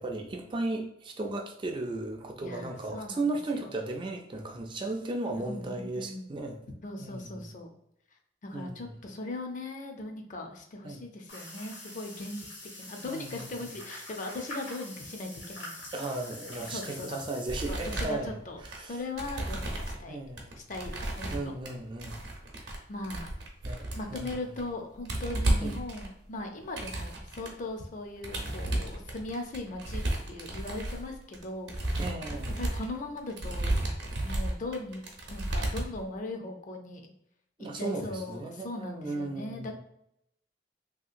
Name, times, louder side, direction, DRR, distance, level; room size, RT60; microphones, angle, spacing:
voice 1, 0.0-6.6 7.0-7.5 8.5-9.0 10.8-11.0 13.1-13.7 15.9-18.4 18.6-19.0 20.1-20.6 21.3-22.2 22.6-22.8 23.6-24.4 25.6-25.7 32.0-32.6 37.6-39.8, right 2 dB, 25° right, 3 dB, 0.3 m, -36 dB
voice 2, 2.4-3.3 3.5-3.7 5.4-6.3 6.8-7.7 8.4-12.5 12.8-15.9 16.6-17.3 17.7-18.6 18.9-20.2 20.7-21.5 22.9-23.3 23.9-32.0 32.6-33.7 34.2-37.1 37.7-39.8, left 2 dB, 45° left, 3 dB, 0.5 m, -39 dB
sound 1, 11.3-17.8, left 1 dB, 85° left, 1.4 m, -45 dB
sound 2, 17.5-18.8 19.2-20.0 20.4-21.7 22.0-22.8 23.0-24.7 24.9-27.5 28.2-36.0, right 1 dB, 70° right, 0.7 m, -33 dB
3.0 x 2.8 x 2.4 m, 0.77 s
head